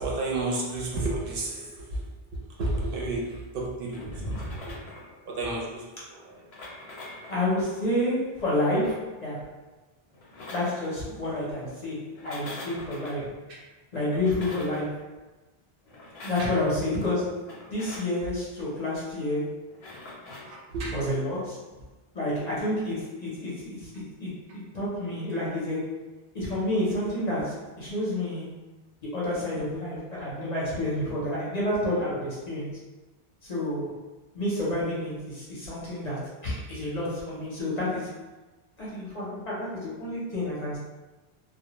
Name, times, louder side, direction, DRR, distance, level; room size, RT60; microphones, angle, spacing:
voice 1, 0.0-4.8 5.3-6.4 13.5-13.6 16.4-16.5 20.3-21.0, right 2 dB, 65° right, -3 dB, 0.7 m, -32 dB
sound 1, 3.9-5.2 6.3-7.5 8.4-9.1 10.1-10.9 12.1-13.2 14.1-14.8 15.9-16.6 17.4-18.1 19.7-20.5, left 2 dB, 85° left, 0.9 m, -44 dB
voice 2, 4.2-4.5 7.3-9.5 10.5-13.4 13.9-15.2 16.2-19.5 20.9-21.6 22.1-28.5 29.0-32.8 33.4-33.9 34.3-38.1 38.8-40.8, left 1 dB, 45° left, -7 dB, 0.7 m, -29 dB
2.2 x 2.1 x 2.9 m, 1.2 s
omnidirectional pair, 1.0 m